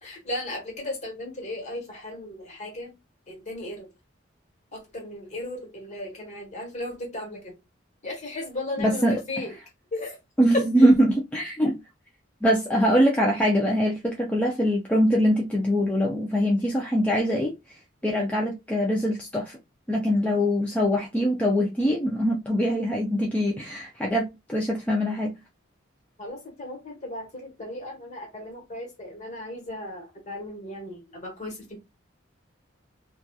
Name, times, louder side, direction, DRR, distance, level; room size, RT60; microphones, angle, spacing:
voice 1, 0.0-2.9 3.3-3.9 4.7-7.5 8.0-9.5 9.9-10.2 10.5-10.9 18.0-18.2 26.2-31.8, left 1 dB, 35° left, 1.1 m, -35 dB
voice 2, 8.8-9.2 10.4-11.7 12.4-17.5 18.0-19.6 19.9-25.3, equal, 5° left, 0.3 m, -23 dB
2.8 x 2.3 x 2.2 m
head